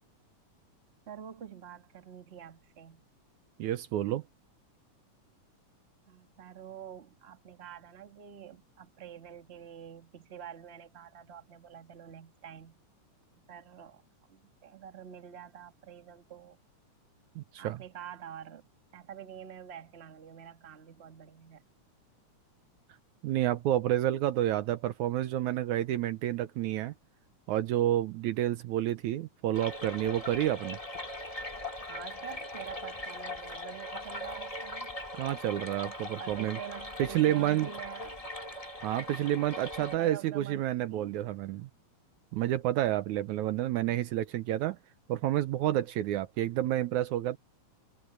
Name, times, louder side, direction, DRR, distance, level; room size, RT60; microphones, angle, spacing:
voice 1, 1.1-3.0 6.1-12.8 13.5-14.0 14.3-16.6 17.6-18.7 18.9-21.6 31.9-35.0 36.2-38.2 39.0-39.2 39.7-41.2, right 9 dB, 30° right, 1.2 m, -47 dB
voice 2, 3.6-4.2 17.4-17.8 23.2-26.9 27.5-30.8 35.2-36.6 37.0-37.7 38.8-41.7 42.3-44.8 45.1-47.4, right 13 dB, 75° right, 2.1 m, -29 dB
sound 1, 29.5-40.0, left 1 dB, 15° left, 1.4 m, -40 dB
omnidirectional pair, 3.7 m